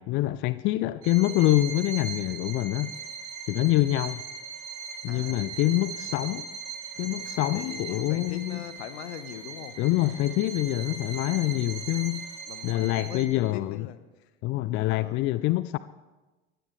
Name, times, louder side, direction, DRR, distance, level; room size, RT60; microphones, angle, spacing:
voice 1, 0.0-2.9 3.5-4.2 5.0-6.5 7.0-8.6 9.8-12.2 12.6-13.8 14.4-15.8, left 17 dB, 35° left, 0.4 m, -26 dB
Bowed string instrument, 1.0-13.5, right 6 dB, 40° right, 3.5 m, -39 dB
voice 2, 5.1-5.5 6.1-6.3 7.5-9.8 12.4-14.3 14.8-15.3, left 11 dB, 65° left, 1.1 m, -42 dB
22.0 x 15.5 x 3.3 m
figure-of-eight pair, 80°, 34 cm